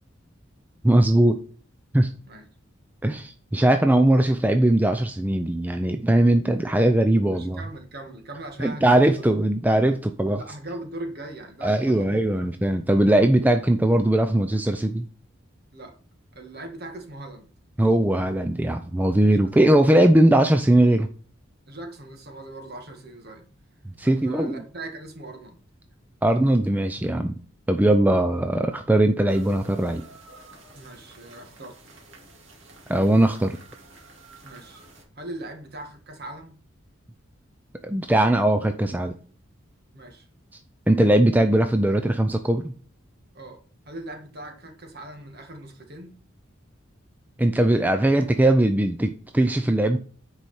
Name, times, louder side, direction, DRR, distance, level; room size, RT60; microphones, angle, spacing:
voice 1, 0.8-1.4 1.9-2.1 3.0-7.6 8.6-10.4 11.6-15.1 17.8-21.1 24.0-24.6 26.2-27.4 27.7-30.0 32.9-33.6 37.8-39.1 40.9-42.7 47.4-50.0, right 1 dB, 10° right, 7 dB, 0.4 m, -20 dB
voice 2, 7.3-9.3 10.4-12.2 15.7-16.0 16.3-17.5 19.2-19.6 20.0-20.1 21.7-23.5 24.0-25.6 30.7-32.0 34.4-34.8 35.2-36.6 39.9-40.3 43.3-43.6 43.9-46.2, right 2 dB, 50° right, 4 dB, 1.7 m, -40 dB
sound 1, 29.3-35.0, right 3 dB, 65° right, 2.4 m, -49 dB
9.3 x 4.8 x 4.3 m, 0.42 s
head